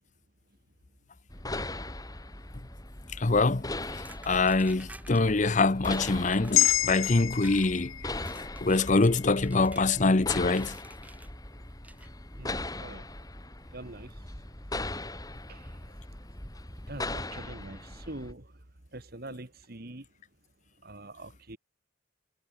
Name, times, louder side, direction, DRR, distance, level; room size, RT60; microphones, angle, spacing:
sound 1, 1.3-18.3, left 2 dB, 20° left, 3.3 m, -39 dB
voice 1, 3.2-3.7 4.3-7.9 8.6-10.7, left 3 dB, 35° left, 0.8 m, -24 dB
sound 2, 4.1-5.2 5.8-6.0 6.3-7.7 8.3-9.9 10.6-11.3 11.8-12.1, right 2 dB, 10° right, 6.6 m, -49 dB
sound 3, 6.5-11.0 11.4-11.6, left 13 dB, 85° left, 1.2 m, -31 dB
voice 2, 12.4-13.1 13.7-14.2 15.5-15.8 16.9-18.5 18.9-20.1 20.8-21.6, right 2 dB, 50° right, 2.0 m, -44 dB
head